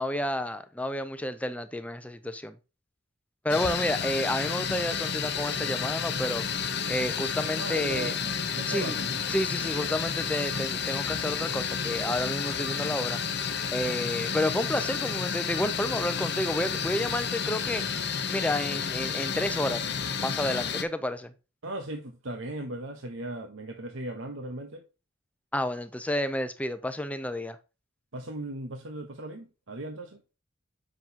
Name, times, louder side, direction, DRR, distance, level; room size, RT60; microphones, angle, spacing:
voice 1, 0.0-2.6 3.4-6.5 6.9-8.2 8.7-9.0 9.3-13.2 13.7-17.8 18.3-19.9 20.2-21.3 25.5-27.6, left 1 dB, 5° left, 0.6 m, -30 dB
sound 1, 3.5-20.8, left 6 dB, 55° left, 0.8 m, -31 dB
voice 2, 7.6-9.2 9.8-9.9 21.6-24.8 28.1-30.2, right 1 dB, 70° right, 1.0 m, -37 dB
7.7 x 6.0 x 2.9 m
head